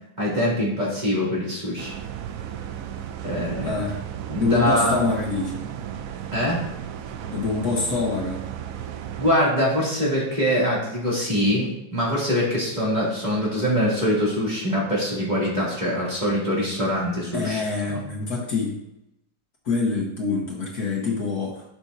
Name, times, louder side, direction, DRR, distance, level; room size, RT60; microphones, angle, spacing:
voice 1, 0.2-1.9 3.2-3.8 4.3-5.0 6.3-6.6 9.2-17.6 17.9-18.0, equal, 25° right, -6 dB, 2.7 m, -23 dB
sound 1, 1.8-9.3, right 9 dB, 80° right, 0.7 m, -34 dB
voice 2, 3.6-4.0 4.4-5.7 7.3-8.4 17.3-18.8 19.6-21.6, left 4 dB, 55° left, -1 dB, 1.6 m, -25 dB
12.0 x 6.1 x 2.7 m, 0.85 s
omnidirectional pair, 2.0 m